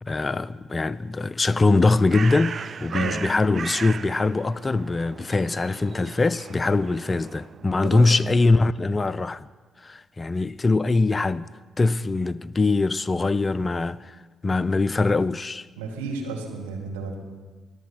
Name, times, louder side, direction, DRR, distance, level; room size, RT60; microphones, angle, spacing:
voice 1, 0.0-9.5 9.8-11.5 11.8-15.7, left 3 dB, 30° left, 0.3 m, -22 dB
Bird, 1.6-7.6, right 6 dB, 45° right, 0.4 m, -37 dB
voice 2, 2.9-3.2 7.8-8.1 15.8-17.2, right 4 dB, 75° right, 1.8 m, -32 dB
22.5 x 7.6 x 5.6 m
figure-of-eight pair, 40°, 0 cm